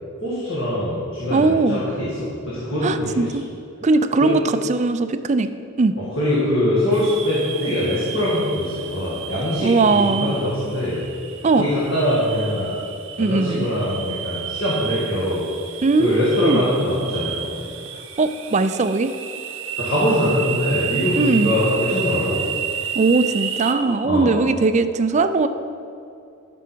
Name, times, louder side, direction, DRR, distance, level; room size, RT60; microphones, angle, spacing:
voice 1, 0.2-3.3 4.2-4.3 5.9-11.0 11.6-12.7 13.2-15.4 16.0-17.5 19.8-22.4 24.0-24.3, left 1 dB, 60° left, -8 dB, 2.2 m, -23 dB
voice 2, 1.3-1.8 2.8-3.4 3.8-5.5 5.8-6.0 9.6-10.4 11.4-11.7 13.2-13.7 15.8-16.6 18.2-19.1 21.2-21.5 22.9-25.5, right 3 dB, 30° right, 10 dB, 0.4 m, -19 dB
sound 1, 6.9-23.7, right 8 dB, 60° right, 0.7 m, -31 dB
12.5 x 6.1 x 4.6 m, 2.6 s
head